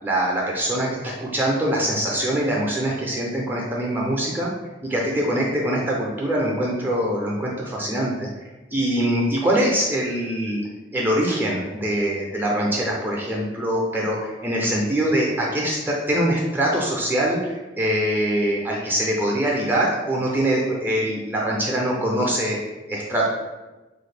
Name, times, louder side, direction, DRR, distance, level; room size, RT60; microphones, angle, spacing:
voice 1, 0.0-4.5 4.8-10.6 10.9-22.6 22.9-23.3, right 1 dB, 10° right, -3 dB, 0.4 m, -23 dB
3.4 x 2.4 x 3.3 m, 1.1 s
head